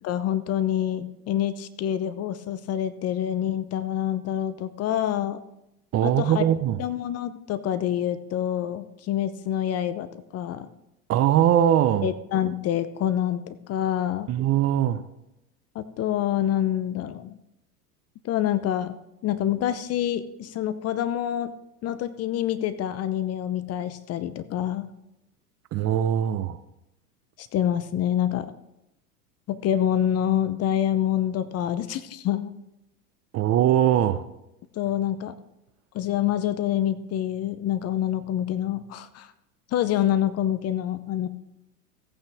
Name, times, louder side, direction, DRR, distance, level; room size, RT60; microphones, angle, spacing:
voice 1, 0.0-5.4 6.0-6.4 6.8-10.1 10.3-10.7 12.0-14.3 15.7-17.4 18.2-19.0 19.2-21.5 21.8-24.9 27.4-28.5 29.5-32.5 34.7-35.3 35.9-39.3 39.7-41.3, left 11 dB, 30° left, 13 dB, 0.7 m, -26 dB
voice 2, 5.9-6.8 11.1-12.1 14.3-15.0 25.7-26.6 33.3-34.2, right 11 dB, 30° right, 12 dB, 0.7 m, -21 dB
16.0 x 8.8 x 3.5 m, 0.88 s
hypercardioid pair, 90°, 48 cm